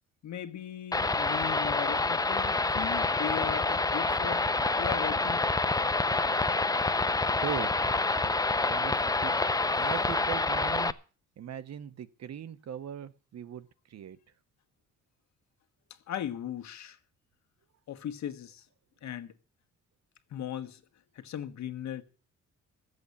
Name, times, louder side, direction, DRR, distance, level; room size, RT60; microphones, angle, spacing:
voice 1, 0.2-4.5 4.8-5.5 16.1-17.0 17.9-18.6 19.0-19.3 20.3-20.8 21.1-22.0, left 10 dB, 65° left, 1.6 m, -38 dB
sound 1, 0.9-10.9, left 3 dB, 10° left, 0.7 m, -27 dB
voice 2, 7.3-8.0 8.6-9.3 9.7-10.9 11.4-14.2, right 9 dB, 60° right, 1.1 m, -40 dB
13.0 x 8.2 x 8.2 m
cardioid pair, 90°, 30 cm